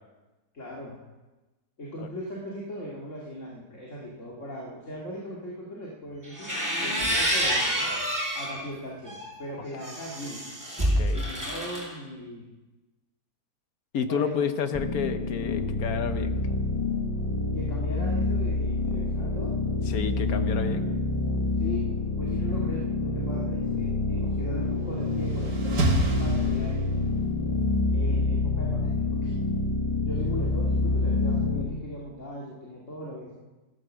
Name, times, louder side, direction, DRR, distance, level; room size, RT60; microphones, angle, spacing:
voice 1, 0.5-1.0 1.8-6.5 6.8-7.9 8.3-10.4 11.1-12.5 14.1-14.4 17.5-19.5 21.6-21.8 22.2-27.1 27.9-29.4 30.0-33.4, equal, 45° left, -4 dB, 2.6 m, -39 dB
sound 1, 6.2-8.6 9.0-11.9, equal, 10° right, 4.7 m, -28 dB
voice 2, 10.8-11.3 13.9-16.3 19.9-20.9, left 7 dB, 65° left, 9 dB, 1.3 m, -30 dB
sound 2, 14.7-31.7, left 2 dB, 20° left, 1.1 m, -27 dB
sound 3, 24.8-27.2, right 3 dB, 80° right, 2.6 m, -29 dB
15.0 x 13.0 x 6.2 m, 1.2 s
omnidirectional pair, 1.8 m